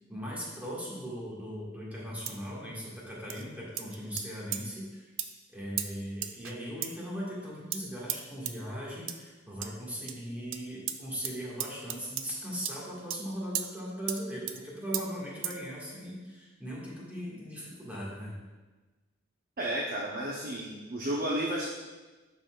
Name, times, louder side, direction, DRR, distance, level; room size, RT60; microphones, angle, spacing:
voice 1, 0.1-5.0 5.5-18.3, equal, 10° right, -6 dB, 1.6 m, -39 dB
sound 1, 2.3-2.5 3.3-3.4 3.8-4.3 4.5-4.6 5.2-5.3 5.8-5.9 6.2-6.6 6.8-6.9 7.7-7.8 8.1-8.2 8.4-8.5 9.1-9.2 9.6-9.7 10.1-10.2 10.5-10.6 10.9-11.0 11.2-11.3 11.6-12.3 12.6-12.7 13.1-13.2 13.5-13.7 14.1-14.2 14.5-14.6 14.9-15.0 15.4-15.6, right 10 dB, 70° right, 0.4 m, -34 dB
voice 2, 19.6-21.6, right 1 dB, 50° right, -4 dB, 0.8 m, -32 dB
11.5 x 4.1 x 2.4 m, 1.2 s
head